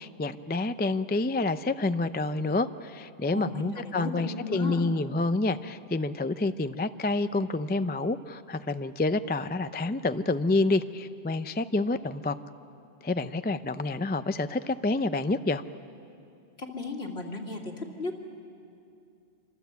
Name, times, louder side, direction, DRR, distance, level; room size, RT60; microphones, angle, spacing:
voice 1, 0.0-12.3 13.0-15.6, left 2 dB, 15° left, 11 dB, 0.3 m, -28 dB
voice 2, 3.3-4.8 16.6-18.2, left 3 dB, 65° left, 1 dB, 2.8 m, -35 dB
27.0 x 25.5 x 8.2 m, 2.6 s
omnidirectional pair, 1.1 m